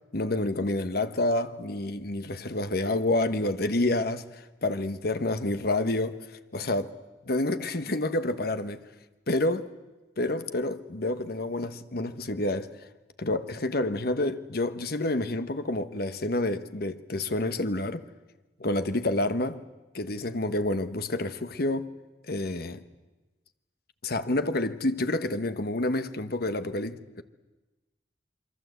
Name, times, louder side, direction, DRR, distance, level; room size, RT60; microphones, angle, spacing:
voice 1, 0.1-6.2 6.5-6.9 7.2-8.8 9.3-9.7 10.2-12.7 13.2-18.0 18.6-19.6 19.9-21.9 22.3-22.8 24.0-27.2, left 2 dB, 55° left, 1.2 m, -28 dB
27.5 x 23.0 x 8.1 m
head